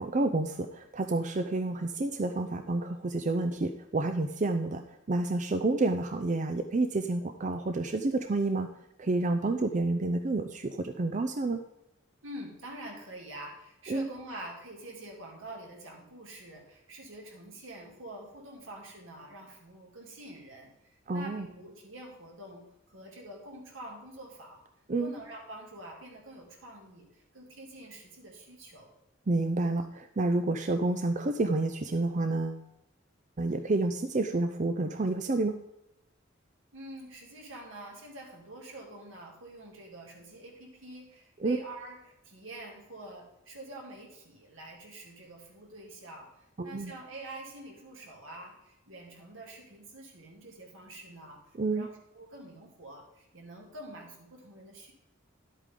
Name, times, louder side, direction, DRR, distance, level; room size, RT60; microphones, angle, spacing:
voice 1, 0.0-4.8 5.1-8.7 9.0-11.6 13.9-14.1 21.1-21.5 24.9-25.1 29.3-32.6 33.4-35.5 41.4-41.6 46.6-46.9 51.6-51.9, right 2 dB, 40° right, 7 dB, 0.5 m, -29 dB
voice 2, 12.2-20.7 21.1-24.6 25.0-28.9 36.7-46.3 46.6-51.4 51.7-54.9, right 1 dB, 80° right, 0 dB, 2.5 m, -46 dB
11.5 x 8.3 x 3.7 m, 0.85 s
head